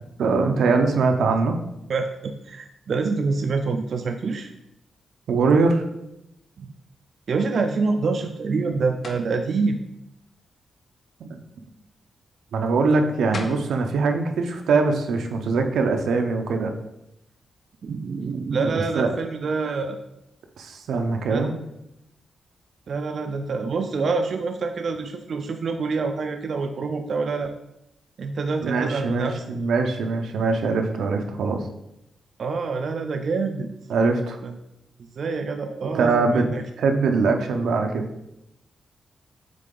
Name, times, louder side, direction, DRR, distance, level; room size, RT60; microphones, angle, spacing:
voice 1, 0.2-1.5 5.3-5.8 11.2-11.4 12.5-16.7 18.9-19.1 20.6-21.5 28.6-31.6 33.9-34.4 35.8-36.5 36.8-38.1, right 4 dB, 90° right, 4 dB, 0.7 m, -22 dB
voice 2, 1.9-4.5 6.6-6.7 7.3-9.8 17.8-20.0 21.3-21.5 22.9-27.5 28.2-29.4 32.4-33.7 34.4-34.5 35.2-36.6, right 4 dB, 50° right, 5 dB, 0.4 m, -26 dB
sound 1, 9.0-9.3 13.0-13.1 13.3-13.7, left 3 dB, 40° left, 0.6 m, -33 dB
7.4 x 3.3 x 3.8 m, 0.85 s
wide cardioid pair, 175°, 0 cm